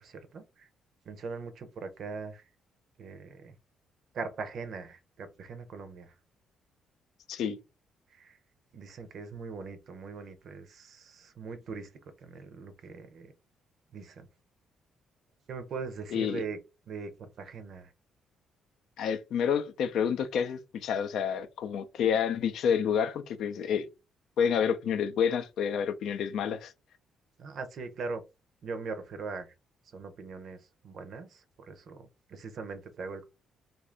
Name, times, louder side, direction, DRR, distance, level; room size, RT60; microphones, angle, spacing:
voice 1, 0.0-0.7 1.1-2.4 3.0-3.5 4.1-6.1 8.1-8.4 8.7-11.9 12.2-13.3 13.9-14.3 15.5-16.6 16.9-17.9 27.4-28.2 28.6-29.5 29.9-30.6 30.8-33.2, right 4 dB, 65° right, 0.6 m, -41 dB
voice 2, 16.1-16.4 19.0-23.9 24.4-26.7, left 7 dB, 75° left, 0.4 m, -29 dB
2.7 x 2.5 x 3.3 m
cardioid pair, 90°, 0 cm